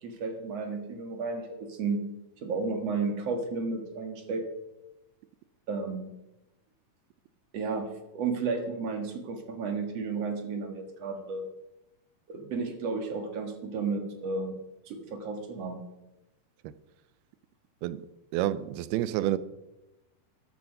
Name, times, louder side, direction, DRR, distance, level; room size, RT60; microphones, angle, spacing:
voice 1, 0.0-2.1 2.4-4.4 5.7-6.1 7.5-11.5 12.3-14.6 14.9-15.8, right 4 dB, 50° right, 2.3 m, -33 dB
voice 2, 18.3-19.4, right 13 dB, 85° right, 2.6 m, -29 dB
13.5 x 12.5 x 5.4 m
omnidirectional pair, 4.4 m